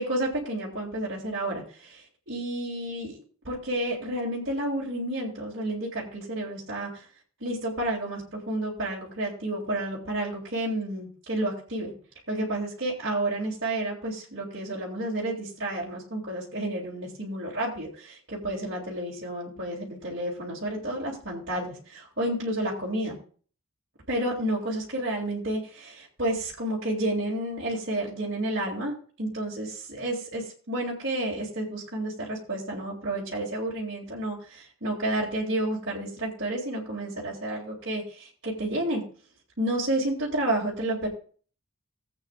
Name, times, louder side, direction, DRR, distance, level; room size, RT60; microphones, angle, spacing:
voice 1, 0.0-7.1 7.4-11.9 12.3-23.2 24.1-39.0 39.6-41.1, right 1 dB, 55° right, -6 dB, 3.0 m, -31 dB
19.0 x 8.6 x 2.5 m, 0.42 s
head